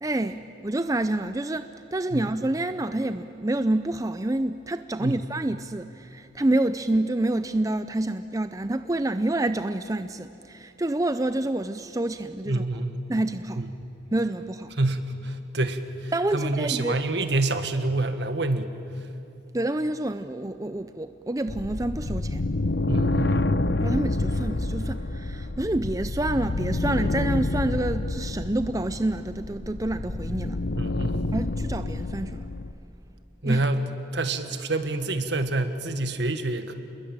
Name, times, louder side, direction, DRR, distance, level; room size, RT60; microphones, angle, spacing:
voice 1, 0.0-12.6 13.1-13.6 14.1-14.7 16.1-17.0 19.5-22.4 23.8-30.6 31.3-32.4 33.5-33.6, right 1 dB, 20° right, 10 dB, 0.5 m, -28 dB
voice 2, 12.5-13.0 13.6-13.7 14.8-18.7 22.8-23.4 30.8-31.3 33.4-33.9 34.1-36.7, right 2 dB, 65° right, 8 dB, 1.7 m, -27 dB
sound 1, 21.5-32.7, left 2 dB, 60° left, 0.8 m, -28 dB
28.0 x 21.0 x 8.9 m, 3.0 s
head